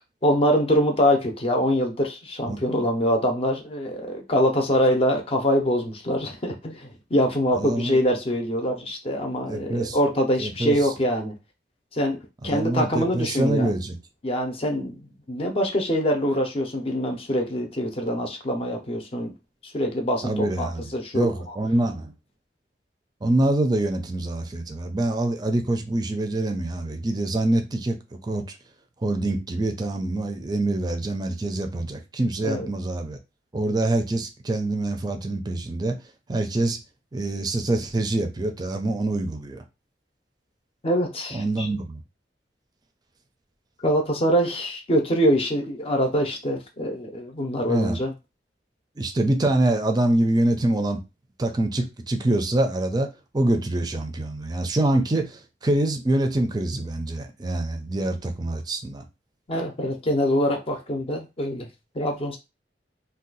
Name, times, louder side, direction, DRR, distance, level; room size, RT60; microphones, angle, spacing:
voice 1, 0.2-11.3 11.9-12.2 12.4-13.7 14.2-19.3 19.6-21.3 32.4-32.7 40.8-41.7 43.8-48.1 59.5-61.7 61.9-62.4, equal, 35° left, 0.6 m, -24 dB
voice 2, 7.6-8.0 9.5-10.0 10.4-10.9 12.4-14.0 20.2-20.9 21.1-22.1 23.2-28.0 28.3-28.4 29.0-33.2 33.5-36.0 36.3-36.8 37.1-39.6 41.3-42.0 47.7-48.0 49.0-51.0 51.4-59.0, right 1 dB, 25° right, 0.5 m, -25 dB
2.7 x 2.3 x 3.9 m
head